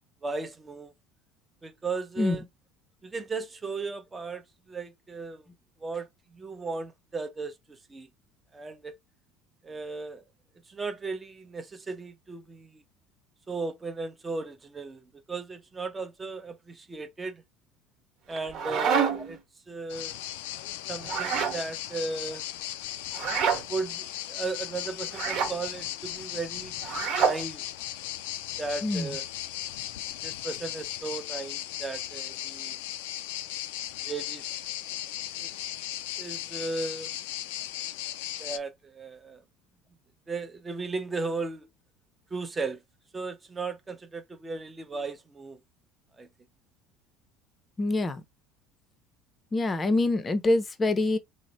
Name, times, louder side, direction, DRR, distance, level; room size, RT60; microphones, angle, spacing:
voice 1, 0.2-0.9 1.6-2.4 3.0-5.5 5.8-8.1 8.5-8.9 9.6-10.2 10.7-12.8 13.5-17.4 18.3-19.4 19.7-20.1 20.9-22.4 23.6-26.7 27.1-27.6 28.6-29.2 30.2-32.8 34.0-34.4 35.3-35.5 36.2-37.1 38.4-39.4 40.3-41.7 42.3-42.8 43.1-45.6 46.2-46.3, right 3 dB, 20° right, 0.7 m, -36 dB
sound 1, 18.3-19.4 21.0-21.6 23.1-23.6 25.1-25.5 26.8-27.4, right 7 dB, 60° right, 1.1 m, -27 dB
sound 2, 19.9-38.6, left 13 dB, 85° left, 0.3 m, -37 dB
voice 2, 47.8-48.2 49.5-51.2, left 2 dB, 20° left, 0.6 m, -25 dB
3.1 x 2.0 x 4.0 m
supercardioid pair, 110°, 0 cm